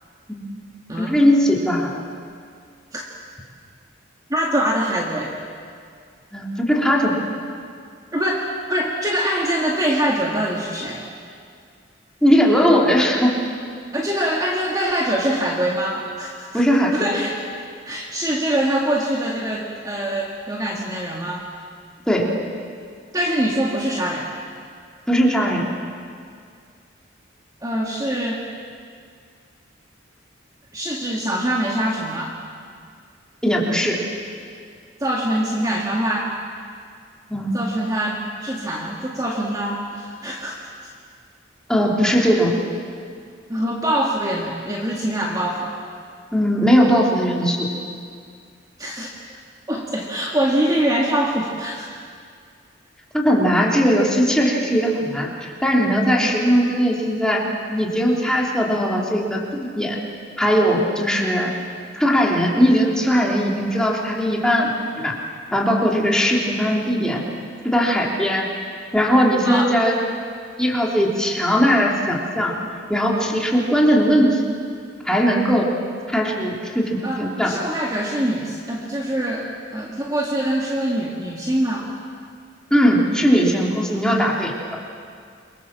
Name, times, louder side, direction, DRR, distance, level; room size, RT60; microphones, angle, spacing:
voice 1, 1.0-2.0 6.3-7.1 12.2-13.3 16.5-17.1 22.1-22.3 25.1-25.6 33.4-34.0 37.3-37.7 41.7-42.5 46.3-47.7 53.1-57.4 57.7-60.0 60.4-61.5 61.9-65.1 65.5-67.2 67.6-68.5 68.9-70.1 70.6-72.5 72.9-74.4 75.0-75.7 76.1-77.5 82.7-84.6, equal, 5° left, -2 dB, 3.3 m, -19 dB
voice 2, 4.3-5.3 8.1-11.1 13.9-16.6 16.9-17.5 17.8-21.5 23.1-24.3 27.6-28.5 30.7-32.4 35.0-36.3 37.5-40.6 42.0-42.2 43.5-45.7 48.8-49.1 49.7-51.9 69.4-69.8 77.0-81.9, right 1 dB, 20° right, -2 dB, 2.0 m, -24 dB
28.5 x 23.5 x 7.6 m, 2.2 s
head